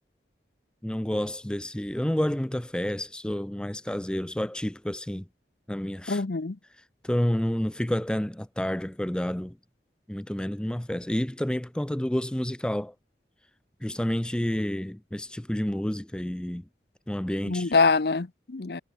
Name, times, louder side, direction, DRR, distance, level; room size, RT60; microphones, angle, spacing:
voice 1, 0.8-5.3 5.7-6.2 7.0-9.6 10.1-12.9 13.8-16.6 17.1-17.7, equal, 5° left, 0.3 m, -29 dB
voice 2, 6.1-6.6 17.4-18.8, left 4 dB, 65° left, 0.7 m, -24 dB
head